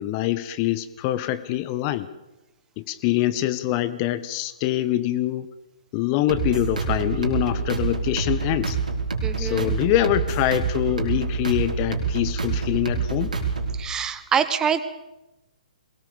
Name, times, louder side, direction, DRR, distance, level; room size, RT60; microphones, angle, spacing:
voice 1, 0.0-2.1 2.8-5.5 5.9-8.8 9.4-13.3, left 15 dB, 30° left, 14 dB, 1.0 m, -24 dB
sound 1, 6.3-13.8, right 5 dB, 75° right, 4.3 m, -26 dB
voice 2, 9.2-9.7 13.7-14.8, right 7 dB, 15° right, 13 dB, 1.0 m, -25 dB
22.5 x 19.0 x 7.1 m, 0.97 s
figure-of-eight pair, 125°, 4 cm